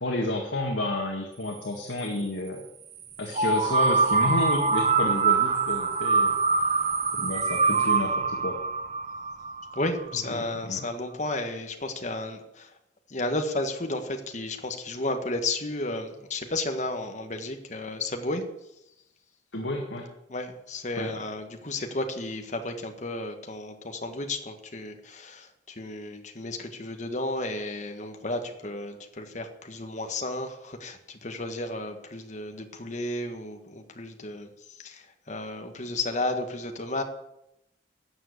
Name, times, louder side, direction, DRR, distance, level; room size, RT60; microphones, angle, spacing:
voice 1, 0.0-2.6 3.2-6.4 7.1-8.6 10.6-10.8 19.5-20.1 21.0-21.2, left 1 dB, 80° left, 1 dB, 1.9 m, -30 dB
sound 1, 3.3-10.1, right 4 dB, 35° right, 0.7 m, -24 dB
voice 2, 9.7-12.7 13.1-18.5 20.3-34.5 34.8-37.0, left 2 dB, 40° left, 5 dB, 1.4 m, -33 dB
12.5 x 7.4 x 8.2 m, 0.86 s
head